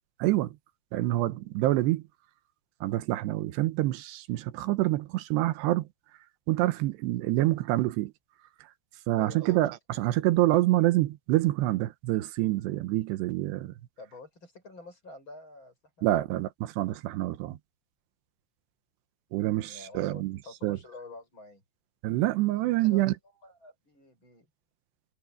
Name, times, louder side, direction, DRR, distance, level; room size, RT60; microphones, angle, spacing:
voice 1, 0.2-0.6 0.9-2.0 2.8-5.9 6.5-8.1 9.1-13.7 16.0-17.6 19.3-20.8 22.0-23.1, right 17 dB, 85° right, 3.1 m, -27 dB
voice 2, 9.1-9.6 14.0-16.2 19.6-21.6 22.8-23.1 23.4-24.5, left 3 dB, 30° left, 6.9 m, -48 dB
omnidirectional pair, 4.8 m